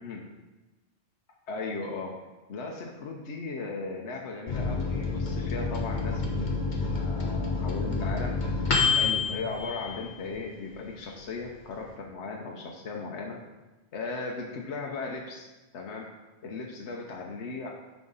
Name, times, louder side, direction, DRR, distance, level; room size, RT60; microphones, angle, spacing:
voice 1, 1.5-2.1 2.5-8.4 8.9-13.4 13.9-15.5 15.7-16.1 16.4-17.7, left 3 dB, 85° left, 0 dB, 1.1 m, -37 dB
Microwave oven, 4.5-10.6 11.0-11.1 11.3-11.9, left 4 dB, 45° left, 1.1 m, -29 dB
6.2 x 4.9 x 5.4 m, 1.1 s
omnidirectional pair, 1.1 m